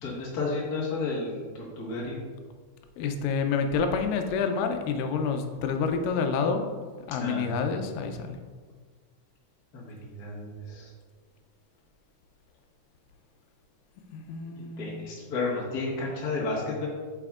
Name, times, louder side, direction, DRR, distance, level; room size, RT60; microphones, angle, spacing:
voice 1, 0.0-1.4 1.8-2.2 7.1-7.4 9.7-10.9 14.5-16.9, left 3 dB, 45° left, -5 dB, 1.3 m, -32 dB
voice 2, 3.0-6.7 7.1-8.4 14.1-15.1, left 5 dB, 90° left, 6 dB, 2.3 m, -28 dB
7.6 x 5.9 x 2.4 m, 1.5 s
omnidirectional pair, 3.8 m